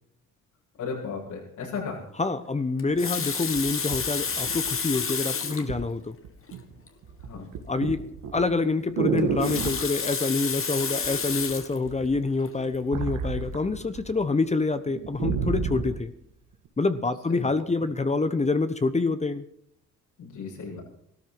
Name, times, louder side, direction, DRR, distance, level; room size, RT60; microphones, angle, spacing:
voice 1, 0.8-2.0 7.2-7.4 17.3-17.5 17.8-17.9 20.2-20.8, left 5 dB, 75° left, -5 dB, 7.8 m, -35 dB
voice 2, 2.2-6.1 7.7-8.0 8.3-16.1 16.8-19.4, left 3 dB, 20° left, 11 dB, 1.1 m, -26 dB
Water tap faucet, 2.8-5.7 6.5-6.6 6.9-7.0 9.2-11.8 12.4-12.7, left 6 dB, 45° left, 2.1 m, -30 dB
sound 1, 2.9-3.0 3.5-5.0 5.7-5.9 6.2-6.7 7.0-9.9 11.0-11.5 11.8-14.1 14.4-14.5 14.9-16.0 16.6-16.7, right 6 dB, 90° right, 2.5 m, -30 dB
16.5 x 13.5 x 6.2 m, 0.71 s
cardioid pair, 90°, 30 cm